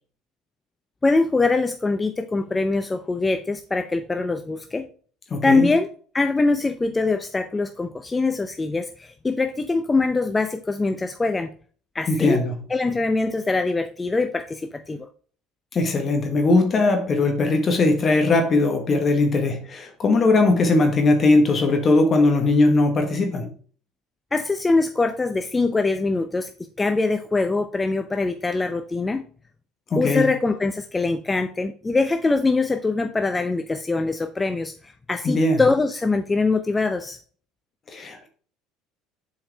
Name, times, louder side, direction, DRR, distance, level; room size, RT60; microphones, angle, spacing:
voice 1, 1.0-4.9 5.4-5.9 6.1-11.5 11.9-12.4 12.7-15.1 24.3-26.5 26.8-29.2 30.0-37.2, left 3 dB, 20° left, 0.6 m, -23 dB
voice 2, 5.3-5.7 12.1-12.5 15.7-23.5 29.9-30.2 35.2-35.6 37.9-38.3, left 2 dB, 35° left, 1.4 m, -19 dB
7.6 x 4.6 x 3.2 m
hypercardioid pair, 70°, 0 cm